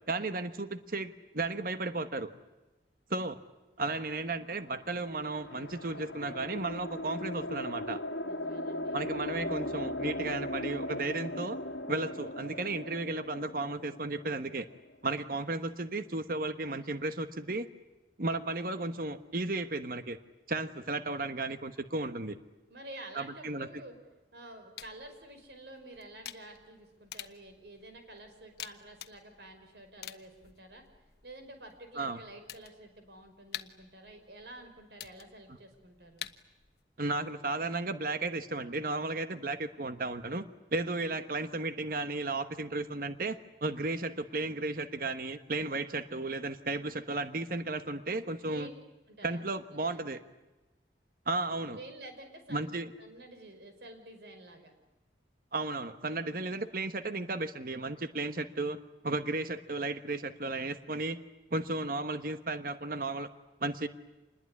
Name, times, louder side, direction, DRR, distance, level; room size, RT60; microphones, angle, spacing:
voice 1, 0.1-2.3 3.1-3.4 3.8-8.0 8.9-11.6 11.9-14.7 15.0-17.7 18.2-20.2 20.5-22.4 23.1-23.7 32.0-32.2 37.0-48.7 49.2-50.2 51.3-51.8 52.5-52.9 55.5-58.8 59.0-61.2 61.5-63.3 63.6-63.9, right 2 dB, 55° right, 10 dB, 1.2 m, -34 dB
sound 1, 4.5-14.9, left 1 dB, 90° left, 1.6 m, -38 dB
voice 2, 8.2-9.0 22.7-24.0 24.3-30.8 31.2-36.3 48.5-48.7 49.1-50.1 51.7-54.7, right 1 dB, 70° right, 6 dB, 5.3 m, -50 dB
sound 2, 8.6-12.2, equal, 5° left, 2.2 m, -55 dB
sound 3, 24.8-36.8, left 11 dB, 65° left, 1.2 m, -49 dB
27.5 x 21.0 x 9.8 m, 1.1 s
head